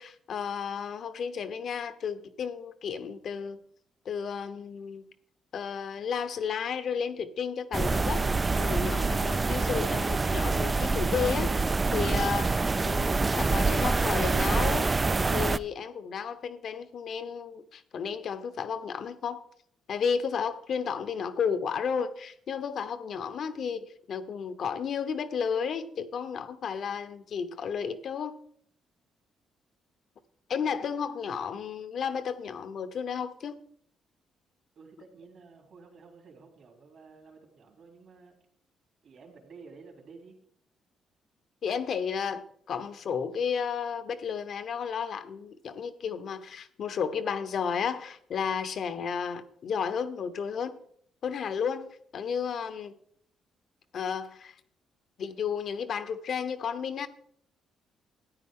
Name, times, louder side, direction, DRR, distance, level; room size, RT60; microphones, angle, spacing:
voice 1, 0.0-3.6 4.0-5.0 5.5-14.9 15.3-19.4 19.9-28.4 30.5-33.6 41.6-50.8 51.2-53.0 53.9-54.5 55.2-57.1, left 6 dB, 60° left, 12 dB, 0.9 m, -33 dB
sound 1, 7.7-15.6, right 3 dB, 25° right, 0.3 m, -26 dB
voice 2, 34.7-38.4 39.0-40.4, right 4 dB, 65° right, 2 dB, 3.4 m, -52 dB
13.5 x 9.4 x 3.8 m, 0.66 s
cardioid pair, 90°, 0 cm